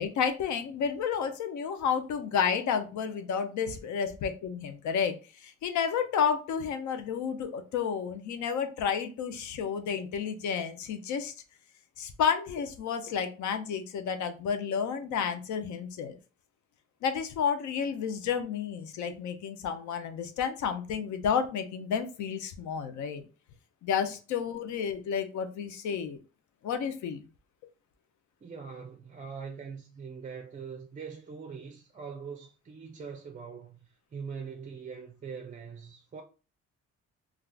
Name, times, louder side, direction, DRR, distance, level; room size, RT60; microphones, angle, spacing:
voice 1, 0.0-5.1 5.4-11.3 12.0-16.2 17.0-23.2 23.8-26.2 26.6-27.2, left 7 dB, 70° left, 0.6 m, -31 dB
voice 2, 28.4-33.8 34.1-36.2, right 6 dB, 25° right, 0.4 m, -42 dB
2.4 x 2.3 x 3.2 m
cardioid pair, 90°, 30 cm